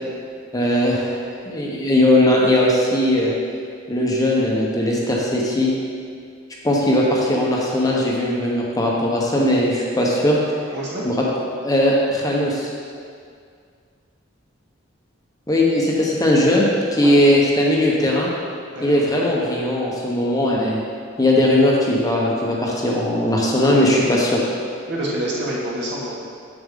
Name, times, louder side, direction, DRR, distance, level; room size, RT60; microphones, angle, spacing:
voice 1, 0.5-1.2 1.5-3.3 3.9-5.7 6.6-10.4 11.0-11.1 11.6-12.7 15.5-18.3 18.8-20.8 21.2-24.4, left 1 dB, 20° left, -3 dB, 0.9 m, -18 dB
voice 2, 10.7-11.0 17.0-17.2 18.7-19.0 24.9-26.2, right 1 dB, 60° right, -6 dB, 1.8 m, -27 dB
7.2 x 7.1 x 3.6 m, 2.2 s
head